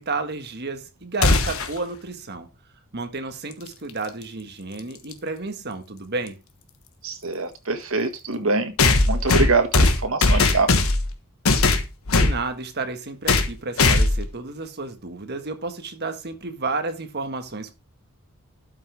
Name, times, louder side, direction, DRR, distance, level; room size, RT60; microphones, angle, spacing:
voice 1, 0.0-2.5 2.9-6.4 12.2-17.7, right 3 dB, 50° right, 1.6 m, -31 dB
sound 1, 1.2-1.8 3.9-4.0 5.1-5.2 8.8-11.1 11.5-12.4 13.3-13.5 13.8-14.3, left 3 dB, 70° left, 1.4 m, -18 dB
voice 2, 7.0-8.7 9.1-10.7, right 3 dB, 65° right, 1.8 m, -24 dB
12.0 x 6.0 x 3.4 m
head